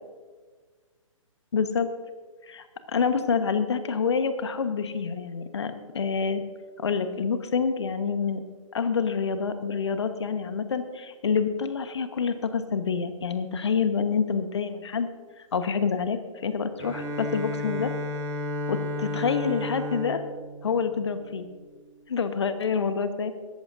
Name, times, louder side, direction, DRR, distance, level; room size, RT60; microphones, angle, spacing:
voice 1, 1.5-1.9 2.5-2.6 2.9-6.4 6.8-8.4 8.7-15.1 15.5-17.9 18.7-20.2 20.6-21.5 22.1-23.3, left 5 dB, 55° left, 10 dB, 1.2 m, -27 dB
Bowed string instrument, 16.8-21.6, left 1 dB, 15° right, 2.7 m, -33 dB
19.5 x 14.0 x 2.7 m, 1.5 s
figure-of-eight pair, 130°, 17 cm